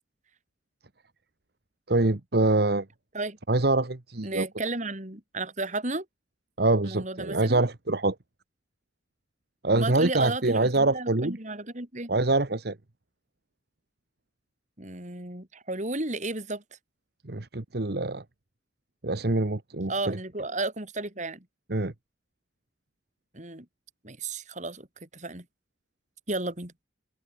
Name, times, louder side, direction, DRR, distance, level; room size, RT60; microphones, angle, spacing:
voice 1, 1.9-2.8 3.5-4.5 6.6-8.1 9.6-11.4 12.1-12.8 17.2-18.2 19.0-20.2 21.7-21.9, right 2 dB, 60° right, 1.3 m, -25 dB
voice 2, 4.2-6.1 6.8-7.6 9.7-12.1 14.8-16.6 19.9-21.4 23.3-23.7 24.0-25.4 26.3-26.7, right 2 dB, 40° right, 4.1 m, -33 dB
head